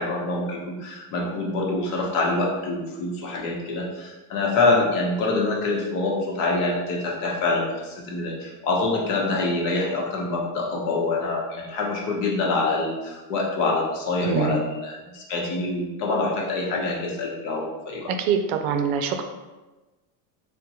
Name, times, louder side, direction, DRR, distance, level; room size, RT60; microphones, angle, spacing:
voice 1, 0.0-18.1, left 3 dB, 70° left, -2 dB, 0.9 m, -25 dB
voice 2, 14.2-14.6 18.1-19.2, right 6 dB, 65° right, 6 dB, 0.5 m, -24 dB
3.6 x 2.2 x 2.8 m, 1.2 s
supercardioid pair, 135°, 46 cm